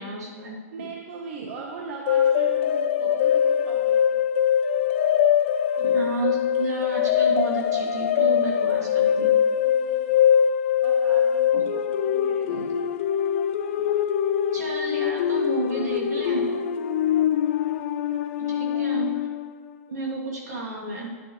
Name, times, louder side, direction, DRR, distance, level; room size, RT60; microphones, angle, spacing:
voice 1, 0.0-0.9 5.8-9.3 11.5-11.6 12.5-12.6 14.5-16.7 18.4-19.1 19.9-21.1, right 2 dB, 85° right, -3 dB, 2.5 m, -31 dB
voice 2, 0.7-4.2 9.6-10.3 10.8-12.8 17.6-19.0, right 4 dB, 50° right, 0 dB, 0.9 m, -40 dB
sound 1, 2.1-19.5, left 9 dB, 50° left, 0.5 m, -23 dB
10.5 x 7.2 x 3.1 m, 1.5 s
hypercardioid pair, 145°, 9 cm